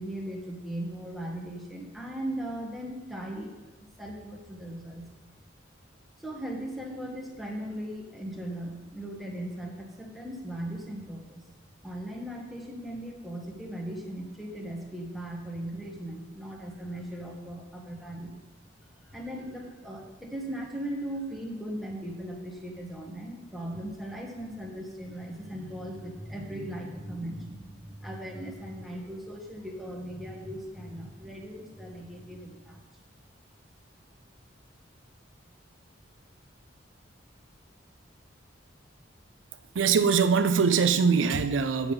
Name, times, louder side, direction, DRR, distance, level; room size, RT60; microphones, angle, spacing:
voice 1, 0.0-5.1 6.2-11.4 11.8-18.4 19.0-32.9, right 1 dB, ahead, 1.4 m, -38 dB
voice 2, 39.7-41.9, right 6 dB, 80° right, 0.5 m, -22 dB
8.0 x 6.9 x 5.5 m
head